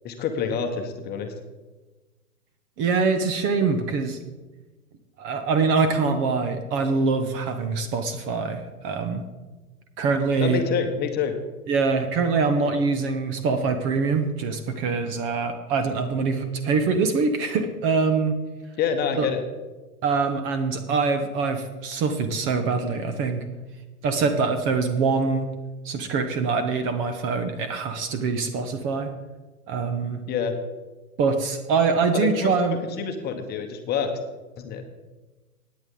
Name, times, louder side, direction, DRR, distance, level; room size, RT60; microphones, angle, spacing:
voice 1, 0.0-1.3 10.4-11.3 18.8-19.4 30.3-30.5 32.1-34.1 34.6-34.8, left 6 dB, 20° left, 5 dB, 1.2 m, -27 dB
voice 2, 2.8-4.2 5.2-9.2 10.0-10.6 11.7-18.3 19.2-19.3 20.0-23.4 24.0-25.5 25.8-29.1 29.7-30.2 31.2-32.8, right 4 dB, 25° right, 8 dB, 1.0 m, -24 dB
16.5 x 9.5 x 3.8 m, 1.2 s
hypercardioid pair, 120°, 45 cm